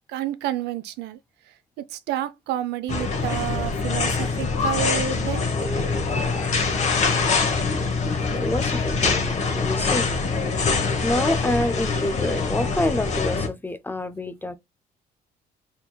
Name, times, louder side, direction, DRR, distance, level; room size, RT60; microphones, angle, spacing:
voice 1, 0.1-1.2 1.9-5.5, right 11 dB, 80° right, 0.5 m, -29 dB
sound 1, 2.9-13.5, left 4 dB, 40° left, 1.0 m, -24 dB
voice 2, 8.4-10.1 10.6-14.6, left 1 dB, 10° left, 0.3 m, -28 dB
4.5 x 3.5 x 2.2 m
cardioid pair, 110°, 17 cm